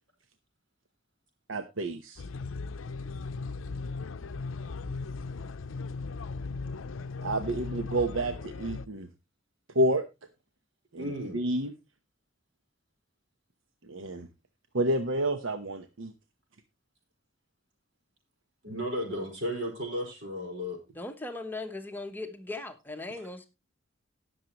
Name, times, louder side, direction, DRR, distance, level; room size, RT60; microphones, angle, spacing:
voice 1, 1.5-2.2 7.2-9.1 9.7-10.0 10.9-11.0 11.3-11.7 13.9-14.3 14.7-16.1, right 1 dB, 85° right, 1.0 m, -29 dB
sound 1, 2.2-8.9, left 4 dB, 90° left, 0.5 m, -37 dB
voice 2, 11.0-11.4 18.6-20.8, equal, 65° right, 4.8 m, -34 dB
voice 3, 20.9-23.5, left 2 dB, 10° left, 0.9 m, -38 dB
18.5 x 6.7 x 3.0 m
head